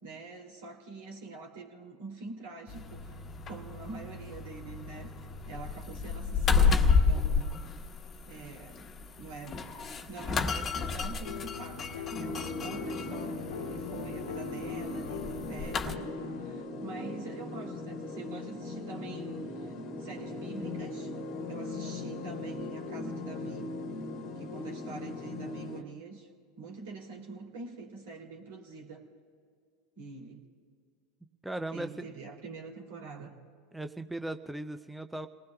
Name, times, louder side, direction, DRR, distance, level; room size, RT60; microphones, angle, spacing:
voice 1, 0.0-7.5 8.3-8.8 9.2-9.6 10.1-21.1 21.4-23.7 24.4-26.3 26.6-29.1 29.9-30.4 31.7-33.4, right 3 dB, 70° right, 1 dB, 2.9 m, -45 dB
sound 1, 2.7-16.0, left 5 dB, 30° left, 1.3 m, -32 dB
sound 2, 11.2-16.6, left 9 dB, 80° left, 0.6 m, -43 dB
sound 3, 12.1-25.8, left 2 dB, 55° left, 1.4 m, -39 dB
voice 2, 31.4-31.9 33.7-35.3, right 1 dB, 5° right, 8 dB, 0.6 m, -37 dB
30.0 x 19.5 x 2.3 m, 2.1 s
hypercardioid pair, 90°, 0 cm